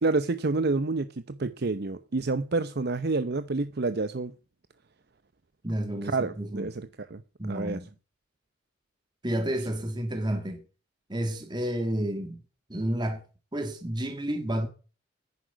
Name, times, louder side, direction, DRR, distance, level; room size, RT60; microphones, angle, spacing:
voice 1, 0.0-4.3 6.0-7.2 7.5-7.8, right 3 dB, 55° right, 0.7 m, -28 dB
voice 2, 5.6-6.7 7.4-7.9 9.2-10.6 11.1-12.4 12.7-13.2 13.5-14.7, right 1 dB, 25° right, 1.7 m, -30 dB
10.5 x 9.7 x 8.8 m
head